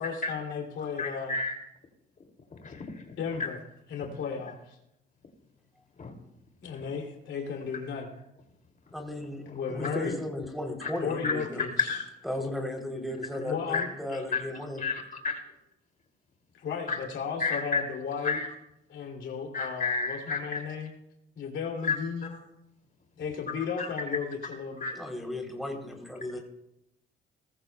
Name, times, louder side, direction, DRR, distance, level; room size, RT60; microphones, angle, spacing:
voice 1, 0.0-1.4 3.2-3.6 3.9-4.6 6.6-8.1 9.5-10.2 11.0-11.9 13.4-13.9 16.5-18.4 18.9-20.9 21.4-22.3 23.2-24.9, left 6 dB, 70° left, 1 dB, 2.8 m, -34 dB
voice 2, 1.0-1.6 2.5-3.0 6.0-6.1 9.5-9.6 10.8-10.9 11.2-11.3 11.6-12.0 13.7-13.8 14.1-14.4 14.8-15.4 16.9-17.0 17.4-17.8 18.2-18.5 19.5-20.6 21.8-22.0 22.3-22.4 23.8-23.9 24.8-24.9, left 4 dB, 45° left, 3 dB, 2.6 m, -31 dB
voice 3, 8.9-11.7 12.2-14.8 24.9-26.4, left 1 dB, ahead, 1 dB, 3.3 m, -35 dB
20.0 x 14.0 x 2.3 m, 0.83 s
cardioid pair, 90°, 20 cm